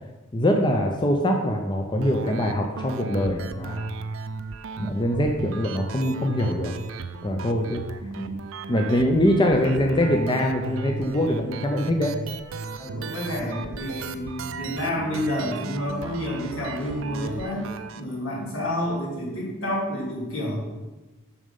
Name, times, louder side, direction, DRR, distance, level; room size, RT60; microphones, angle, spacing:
voice 1, 0.3-3.9 4.8-6.7 7.2-7.8 8.2-8.3 8.7-12.1, equal, 25° left, 2 dB, 0.7 m, -23 dB
sound 1, 2.0-18.0, right 4 dB, 75° right, 0.5 m, -35 dB
voice 2, 12.8-17.7 18.0-20.6, left 1 dB, 75° left, -5 dB, 3.1 m, -29 dB
7.1 x 6.5 x 5.3 m, 1.1 s
head